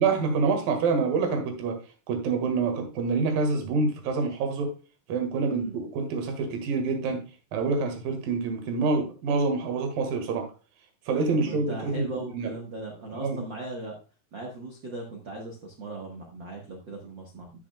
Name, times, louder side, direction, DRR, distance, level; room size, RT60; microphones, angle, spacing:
voice 1, 0.0-1.8 2.1-4.7 5.1-7.2 7.5-10.5 11.1-12.6 13.2-13.4, right 4 dB, 65° right, 5 dB, 3.3 m, -26 dB
voice 2, 5.4-5.8 11.3-14.0 14.3-17.5, right 2 dB, 85° right, 0 dB, 1.0 m, -38 dB
13.0 x 6.3 x 2.3 m, 0.33 s
omnidirectional pair, 4.6 m